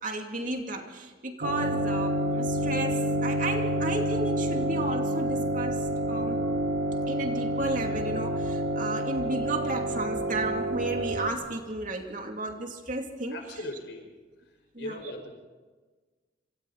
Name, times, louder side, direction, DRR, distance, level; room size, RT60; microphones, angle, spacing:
voice 1, 0.0-6.4 7.1-13.6 14.7-15.1, right 2 dB, 45° right, 3 dB, 2.7 m, -33 dB
sound 1, 1.4-11.3, right 1 dB, 80° right, 2.3 m, -28 dB
voice 2, 13.3-14.1 14.8-15.3, left 2 dB, 70° left, 3 dB, 5.1 m, -38 dB
27.0 x 27.0 x 4.2 m, 1.3 s
head